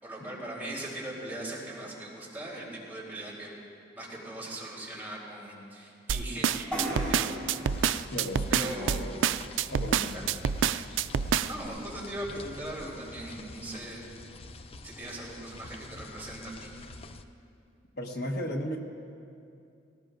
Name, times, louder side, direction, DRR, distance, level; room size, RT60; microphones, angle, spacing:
voice 1, 0.0-3.5 3.9-7.3 8.5-9.0 10.1-10.2 11.4-14.0 14.8-16.7, right 1 dB, 10° right, -6 dB, 3.6 m, -39 dB
sound 1, 6.1-11.7, right 8 dB, 85° right, 0.4 m, -27 dB
sound 2, 6.7-10.3, equal, 5° left, 4.2 m, -39 dB
sound 3, 7.7-17.2, left 3 dB, 30° left, 0.5 m, -47 dB
voice 2, 8.1-9.2 9.7-10.4 18.0-18.8, equal, 60° left, 2 dB, 1.3 m, -35 dB
18.5 x 18.5 x 2.6 m, 2.5 s
head